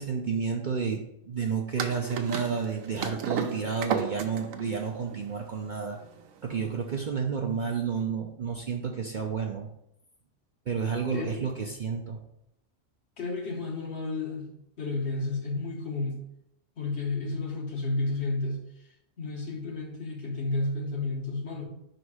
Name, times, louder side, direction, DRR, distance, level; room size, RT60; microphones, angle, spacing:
voice 1, 0.0-6.0 6.4-9.7 10.7-12.2, right 6 dB, 50° right, 0.6 m, -31 dB
sound 1, 1.8-6.9, right 7 dB, 85° right, 1.0 m, -34 dB
voice 2, 11.1-11.5 13.2-16.2 16.8-18.9 19.2-21.7, left 3 dB, 55° left, 1.4 m, -32 dB
5.3 x 3.9 x 4.8 m
omnidirectional pair, 1.3 m